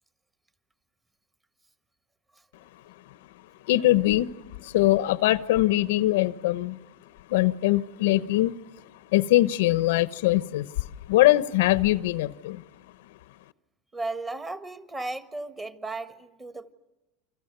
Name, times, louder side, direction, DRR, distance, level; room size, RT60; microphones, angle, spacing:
voice 1, 3.7-4.3 4.6-6.8 7.3-8.5 9.1-12.6, left 16 dB, 80° left, 0.9 m, -22 dB
voice 2, 13.9-16.7, right 2 dB, 15° right, 1.5 m, -35 dB
29.5 x 26.0 x 6.8 m
supercardioid pair, 145°, 0 cm